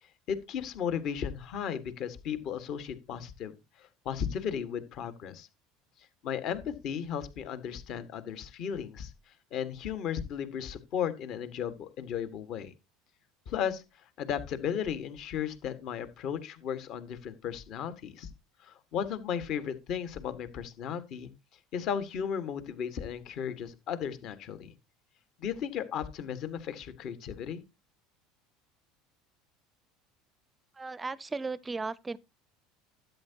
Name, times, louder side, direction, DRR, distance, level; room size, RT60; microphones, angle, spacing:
voice 1, 0.3-5.5 6.2-12.7 13.4-18.3 18.6-21.3 21.7-24.7 25.4-27.6, left 8 dB, 55° left, 1.7 m, -35 dB
voice 2, 30.8-32.2, right 3 dB, 20° right, 0.5 m, -36 dB
12.5 x 8.3 x 2.9 m
hypercardioid pair, 75°, 0 cm